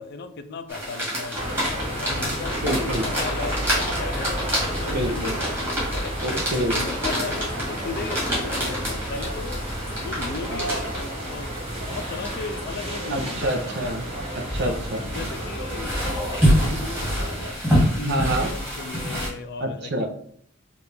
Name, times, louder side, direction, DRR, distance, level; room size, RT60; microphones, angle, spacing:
voice 1, 0.0-4.4 4.7-6.2 6.7-9.6 10.0-13.5 14.6-17.5 18.0-20.1, left 4 dB, 55° left, 9 dB, 0.4 m, -36 dB
sound 1, 0.7-19.3, equal, 10° right, 1.7 m, -27 dB
sound 2, 1.3-17.5, right 1 dB, 30° right, 0.9 m, -32 dB
voice 2, 2.6-3.0 4.9-5.4 6.2-6.8 13.1-14.0 14.5-15.0 18.0-18.5 19.6-20.1, right 1 dB, 55° right, 5 dB, 0.7 m, -27 dB
4.6 x 2.5 x 3.3 m, 0.62 s
head